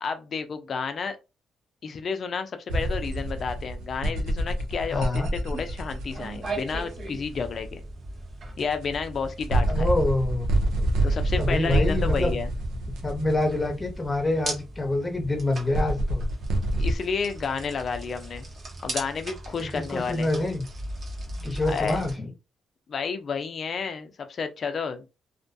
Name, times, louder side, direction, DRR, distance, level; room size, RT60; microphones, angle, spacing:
voice 1, 0.0-1.2 1.8-7.8 8.6-9.9 11.0-12.5 16.8-18.4 18.8-20.3 21.7-22.0 22.9-25.1, left 5 dB, 50° left, 0.5 m, -31 dB
sound 1, 2.7-6.8 8.6-8.7 9.4-13.9 15.7-17.0, right 1 dB, 90° right, 0.5 m, -26 dB
voice 2, 4.9-5.3 9.7-10.5 10.8-10.9 11.4-12.4 13.0-16.2 19.6-20.6 21.4-22.3, left 2 dB, 20° left, 0.8 m, -26 dB
sound 2, 5.5-22.2, right 2 dB, 50° right, 0.9 m, -39 dB
2.4 x 2.2 x 2.6 m
cardioid pair, 90°, 0 cm